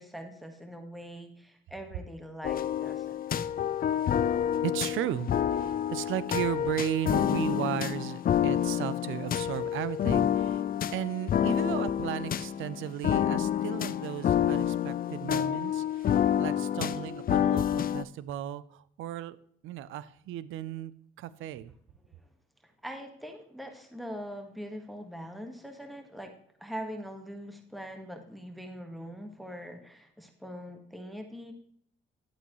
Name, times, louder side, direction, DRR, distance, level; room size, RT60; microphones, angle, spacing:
voice 1, 0.0-3.2 16.3-16.4 22.0-22.2 22.8-26.3 26.6-31.5, equal, ahead, 4 dB, 1.5 m, -42 dB
sound 1, 2.4-18.0, left 10 dB, 45° left, 0.5 m, -28 dB
voice 2, 4.6-10.6 10.9-19.4 19.6-20.9 21.2-21.7, right 11 dB, 85° right, 17 dB, 0.5 m, -35 dB
11.5 x 8.3 x 3.1 m, 0.64 s
cardioid pair, 90°, 20 cm